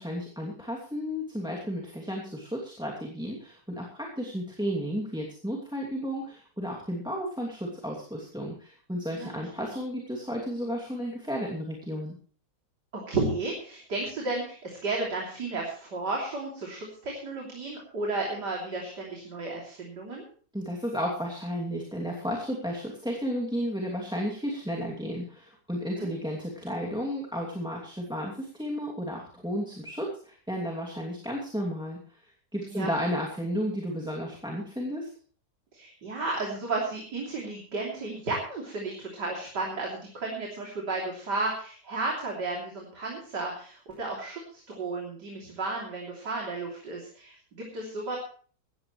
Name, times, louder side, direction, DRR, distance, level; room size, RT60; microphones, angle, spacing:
voice 1, 0.0-12.1 20.5-32.2 32.5-35.1, equal, ahead, -1 dB, 2.5 m, -33 dB
voice 2, 9.1-9.7 12.9-20.3 25.9-26.1 32.7-32.9 35.7-48.2, right 3 dB, 70° right, -1 dB, 3.7 m, -33 dB
17.5 x 14.0 x 3.2 m, 0.43 s
omnidirectional pair, 1.9 m